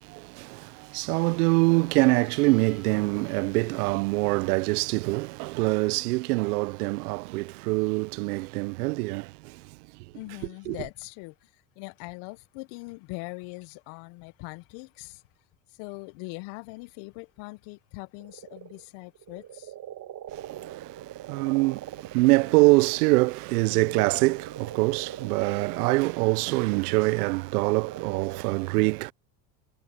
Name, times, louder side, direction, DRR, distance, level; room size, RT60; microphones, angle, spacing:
voice 1, 0.0-9.6 10.7-10.8 20.3-29.1, right 24 dB, 85° right, 0.5 m, -24 dB
Livestock farm animals working animals, 2.1-4.7 9.1-9.3, equal, ahead, 5.0 m, -61 dB
voice 2, 10.1-11.5 11.8-15.2 15.8-19.7 23.7-24.1, left 26 dB, 65° left, 1.0 m, -41 dB
sound 1, 18.2-28.4, right 11 dB, 45° right, 1.5 m, -42 dB
hypercardioid pair, 85°, 44 cm